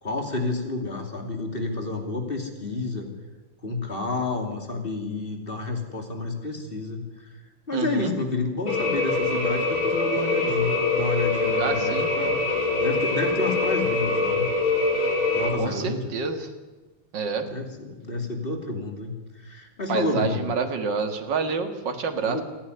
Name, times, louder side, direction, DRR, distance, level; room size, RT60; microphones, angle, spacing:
voice 1, 0.0-3.1 3.6-7.4 7.7-12.4 12.7-14.5 15.3-16.1 17.4-20.5 22.2-22.4, left 3 dB, 25° left, 4 dB, 2.9 m, -30 dB
voice 2, 7.7-8.1 11.5-12.1 15.5-16.5 17.1-17.5 19.9-22.4, right 5 dB, 60° right, 6 dB, 2.5 m, -28 dB
sound 1, 8.7-15.5, left 3 dB, 70° left, 5.5 m, -24 dB
27.5 x 10.5 x 9.8 m, 1.2 s
omnidirectional pair, 2.3 m